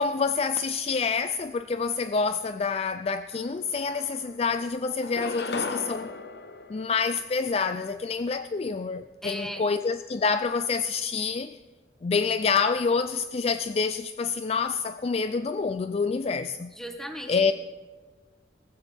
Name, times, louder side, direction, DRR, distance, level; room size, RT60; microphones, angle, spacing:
voice 1, 0.0-6.1 6.7-11.6 12.0-16.7 17.3-17.5, left 5 dB, 35° left, 0.4 m, -27 dB
sound 1, 3.3-3.4 3.7-4.5 5.0-7.6, left 3 dB, 65° left, 1.0 m, -37 dB
voice 2, 9.2-9.7 16.7-17.5, equal, 5° left, 1.5 m, -37 dB
18.0 x 15.5 x 3.5 m
head